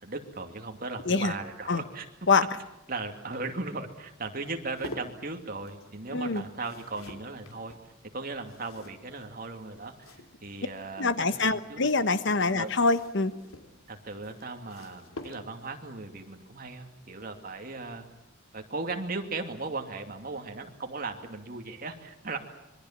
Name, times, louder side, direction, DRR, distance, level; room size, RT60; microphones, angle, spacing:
voice 1, 0.0-2.1 2.9-7.8 8.1-10.1 10.4-11.9 12.6-12.7 13.9-18.1 18.5-22.4, right 3 dB, 45° right, 4 dB, 2.6 m, -37 dB
sound 1, 2.1-10.8 11.9-15.8 17.5-17.8 18.0-18.1, left 1 dB, 90° left, 2.9 m, -49 dB
voice 2, 11.0-13.3, left 3 dB, 60° left, 12 dB, 1.2 m, -25 dB
26.0 x 23.0 x 7.4 m, 0.94 s
head